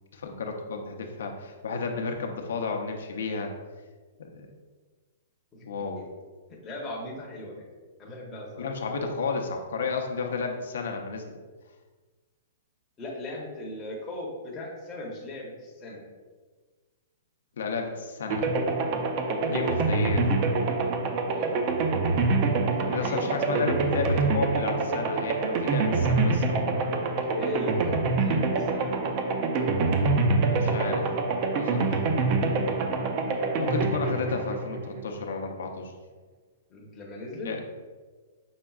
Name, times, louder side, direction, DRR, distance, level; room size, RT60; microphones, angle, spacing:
voice 1, 0.1-3.5 4.3-4.5 5.6-6.1 8.6-11.4 17.6-18.5 19.4-20.4 22.8-26.8 30.4-31.1 31.6-32.0 33.6-35.9 37.4-37.6, left 4 dB, 80° left, 3 dB, 0.5 m, -32 dB
voice 2, 6.5-7.7 8.0-8.7 13.0-16.0 19.5-19.8 21.2-21.6 23.0-24.6 27.3-29.2 36.7-37.5, left 2 dB, 15° left, -3 dB, 0.7 m, -38 dB
sound 1, 18.3-35.2, right 3 dB, 30° right, 0.4 m, -26 dB
5.6 x 3.5 x 2.3 m, 1.4 s
hypercardioid pair, 170°, 0 cm